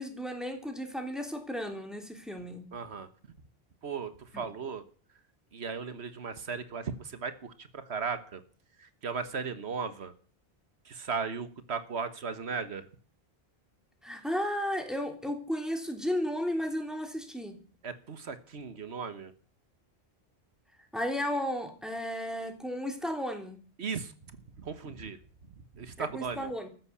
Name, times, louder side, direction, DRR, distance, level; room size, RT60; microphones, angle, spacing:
voice 1, 0.0-2.7 4.3-4.4 14.0-17.6 20.8-23.6 26.0-26.7, equal, ahead, 4 dB, 3.1 m, -34 dB
voice 2, 2.7-3.1 3.8-4.8 5.5-8.4 8.8-10.1 10.8-12.9 17.8-19.3 23.8-24.1 24.6-25.2 25.7-26.5, right 5 dB, 80° right, 12 dB, 1.5 m, -36 dB
14.0 x 10.5 x 8.5 m, 0.41 s
omnidirectional pair, 1.1 m